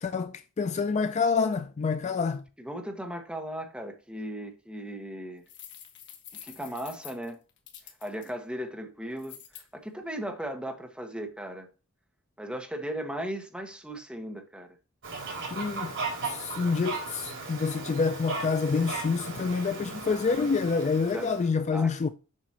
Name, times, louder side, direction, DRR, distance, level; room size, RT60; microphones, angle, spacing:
voice 1, 0.0-2.5 15.5-15.9 16.2-22.1, left 5 dB, 30° left, 0.3 m, -27 dB
voice 2, 2.6-5.4 6.3-7.4 8.0-11.7 12.4-14.7 21.1-21.4 21.7-21.9, right 1 dB, 5° right, 1.2 m, -37 dB
sound 1, 5.5-8.3 9.2-9.6, left 9 dB, 55° left, 1.5 m, -47 dB
Fowl, 15.0-21.5, right 3 dB, 60° right, 3.3 m, -37 dB
7.4 x 5.8 x 2.9 m
head